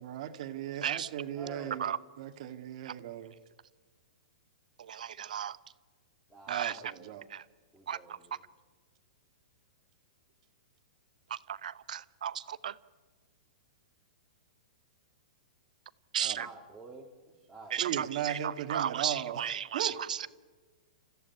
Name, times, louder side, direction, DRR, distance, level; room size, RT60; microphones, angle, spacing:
voice 1, 0.0-3.4 6.5-7.3 16.2-16.4 17.8-20.0, right 11 dB, 55° right, 8 dB, 1.9 m, -37 dB
voice 2, 1.3-1.8 6.3-7.3 7.7-8.4 16.4-17.8, right 3 dB, ahead, -6 dB, 2.7 m, -50 dB
voice 3, 4.9-5.6 6.5-6.7 7.3-7.4 7.9-8.2 11.5-12.7 16.1-16.5 17.7-18.4 18.7-20.3, right 9 dB, 80° right, 17 dB, 0.8 m, -34 dB
28.0 x 15.0 x 9.4 m, 1.4 s
hypercardioid pair, 140°, 4 cm